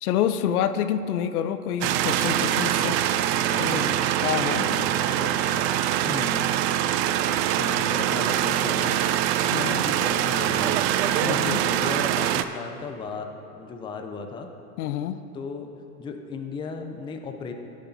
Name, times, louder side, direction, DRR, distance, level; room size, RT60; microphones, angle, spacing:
voice 1, 0.0-3.0 3.6-3.9 4.2-4.8 9.5-9.8 11.2-11.6 14.8-15.2, left 9 dB, 70° left, 12 dB, 0.6 m, -27 dB
sound 1, 1.8-12.4, right 11 dB, 45° right, 0.5 m, -24 dB
voice 2, 3.2-4.0 4.5-5.7 6.0-6.5 6.8-9.0 9.4-10.8 11.4-14.5 15.3-17.5, left 4 dB, 10° left, 5 dB, 0.5 m, -36 dB
16.5 x 8.3 x 2.8 m, 2.8 s
hypercardioid pair, 110°, 47 cm